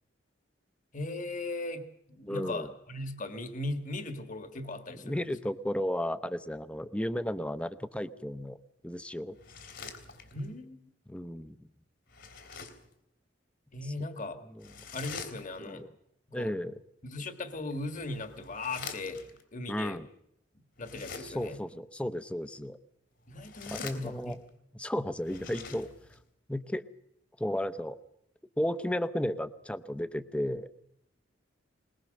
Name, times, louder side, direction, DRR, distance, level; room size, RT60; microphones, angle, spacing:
voice 1, 0.9-5.3 10.3-10.9 13.7-14.4 14.9-15.8 16.3-16.5 17.0-19.2 19.5-20.0 20.8-21.6 23.3-24.3, left 2 dB, 45° left, 8 dB, 1.7 m, -38 dB
voice 2, 2.3-2.7 5.0-8.6 8.8-9.4 11.1-11.6 14.5-14.7 15.6-15.9 16.3-16.7 19.7-20.1 21.2-22.8 23.7-24.4 24.7-25.9 26.5-26.8 27.4-28.0 28.6-30.7, left 1 dB, 5° left, 13 dB, 0.7 m, -33 dB
sound 1, 9.3-10.6 12.1-12.9 14.6-15.8 17.6-19.4 20.8-21.6 23.2-24.5 25.1-26.2, left 5 dB, 70° left, 3.3 m, -46 dB
21.5 x 20.5 x 6.5 m, 0.78 s
head